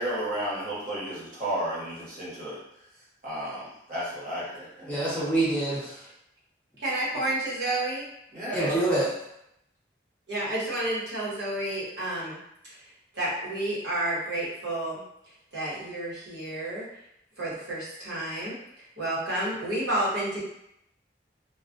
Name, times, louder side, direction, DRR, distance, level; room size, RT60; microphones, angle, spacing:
voice 1, 0.0-2.6 3.2-5.2 8.3-9.0, right 1 dB, 50° right, -8 dB, 1.1 m, -33 dB
voice 2, 4.8-6.1 8.5-9.1, right 2 dB, 10° left, -8 dB, 0.6 m, -26 dB
voice 3, 6.8-8.0 10.3-12.4 13.1-15.0 15.5-16.9 17.4-18.5 19.0-20.4, right 1 dB, 85° right, -8 dB, 1.0 m, -30 dB
2.3 x 2.2 x 2.5 m, 0.80 s
head